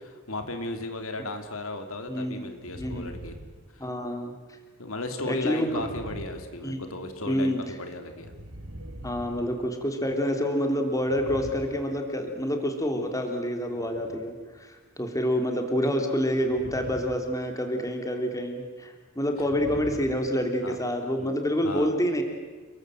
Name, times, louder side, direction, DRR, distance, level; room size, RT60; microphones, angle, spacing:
voice 1, 0.3-3.3 3.7-3.9 4.8-8.3 20.6-20.8 21.2-21.3 21.6-21.9, left 2 dB, 70° left, 6 dB, 3.0 m, -35 dB
voice 2, 2.1-2.5 2.8-3.0 3.8-4.3 5.3-5.9 6.6-6.8 7.3-7.6 9.0-22.2, equal, 15° left, 4 dB, 3.2 m, -28 dB
sound 1, 2.6-4.2 5.7-7.2 8.0-10.2 10.9-12.5 13.6-14.4 16.4-17.3 17.6-17.9 19.3-20.9, right 1 dB, 75° right, 3.1 m, -43 dB
29.5 x 23.0 x 7.8 m, 1.4 s
head